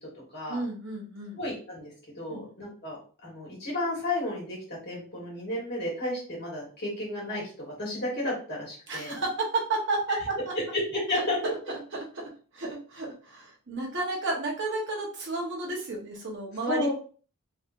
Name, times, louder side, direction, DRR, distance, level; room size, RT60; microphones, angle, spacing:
voice 1, 0.5-1.4 2.3-2.5 8.9-10.5 11.9-12.2 12.5-16.9, right 2 dB, 55° right, -1 dB, 1.1 m, -32 dB
voice 2, 1.4-9.2 10.7-11.4 16.6-16.9, left 1 dB, 50° left, -4 dB, 1.5 m, -32 dB
3.3 x 2.7 x 2.6 m, 0.40 s
head